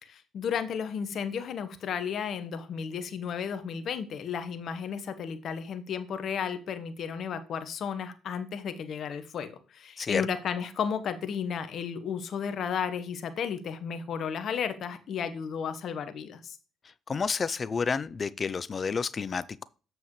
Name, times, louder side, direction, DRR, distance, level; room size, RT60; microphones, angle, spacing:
voice 1, 0.0-16.6, left 7 dB, 60° left, 1.2 m, -33 dB
voice 2, 17.1-19.6, left 5 dB, 40° left, 0.5 m, -30 dB
7.8 x 6.9 x 3.2 m
supercardioid pair, 60°, 0 cm